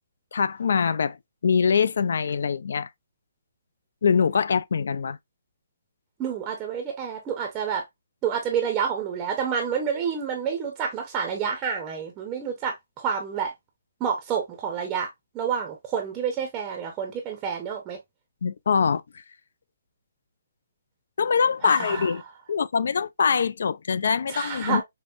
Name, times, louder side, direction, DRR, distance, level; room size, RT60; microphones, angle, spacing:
voice 1, 0.3-1.2 1.4-2.9 4.0-5.2 18.4-19.0 21.2-22.2 22.5-24.8, left 6 dB, 70° left, 0.3 m, -23 dB
voice 2, 6.2-7.8 8.2-13.5 14.0-15.1 15.3-18.0 21.6-22.1 24.3-24.8, right 7 dB, 15° right, 0.6 m, -29 dB
5.3 x 2.1 x 2.4 m
hypercardioid pair, 165°, 0 cm